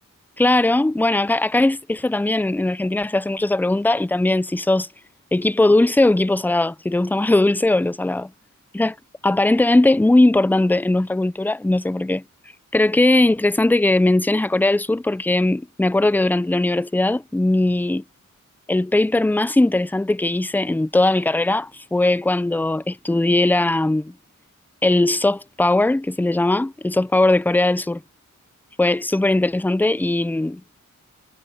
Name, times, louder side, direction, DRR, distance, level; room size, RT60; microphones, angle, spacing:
voice 1, 0.4-4.9 5.3-8.3 8.7-9.0 9.2-12.2 12.7-18.0 18.7-24.1 24.8-28.0 28.8-30.6, left 2 dB, 5° left, 0.5 m, -19 dB
wide cardioid pair, 90°, 33 cm